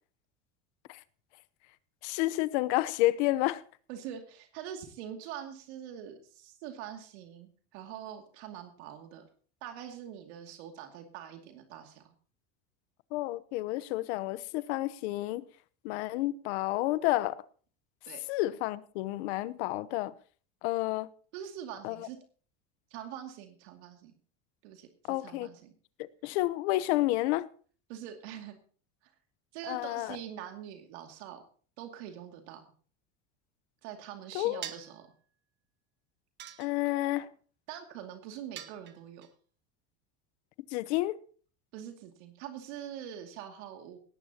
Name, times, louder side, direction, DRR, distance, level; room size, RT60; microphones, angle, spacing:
voice 1, 2.0-3.6 13.1-15.4 15.8-17.4 18.3-20.1 20.6-21.1 21.8-22.1 25.1-25.5 26.0-27.5 29.7-30.2 34.3-34.6 36.6-37.3 40.7-41.2, left 17 dB, 80° left, 1.0 m, -30 dB
voice 2, 3.9-9.2 9.6-12.1 18.1-18.2 21.3-22.2 22.9-24.1 24.6-25.7 27.9-28.6 29.0-29.1 29.5-31.4 31.8-32.6 33.8-35.1 37.7-39.3 41.7-44.0, right 10 dB, 80° right, 2.5 m, -44 dB
sound 1, 34.6-35.0 36.4-37.1 38.6-39.3, right 10 dB, 35° right, 1.2 m, -44 dB
18.5 x 14.5 x 2.9 m
cardioid pair, 155°, 33 cm